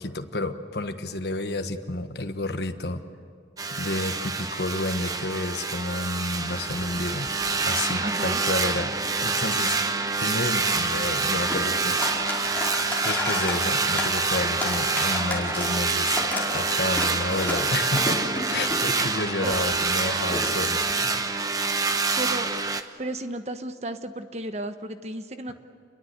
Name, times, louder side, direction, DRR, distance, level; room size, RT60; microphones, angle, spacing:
voice 1, 0.0-3.0 3.7-7.3 7.6-8.9 9.2-12.1 13.0-16.2 16.5-18.2 18.5-21.4, left 2 dB, 70° left, 7 dB, 1.4 m, -30 dB
sound 1, 3.6-22.8, right 4 dB, 20° right, 1.0 m, -26 dB
sound 2, 6.5-20.9, left 1 dB, 10° left, 4.9 m, -35 dB
voice 2, 8.0-8.4 19.4-19.5 22.2-22.5 23.0-25.5, right 1 dB, 40° right, 9 dB, 1.2 m, -33 dB
29.0 x 22.5 x 8.1 m, 2.2 s
head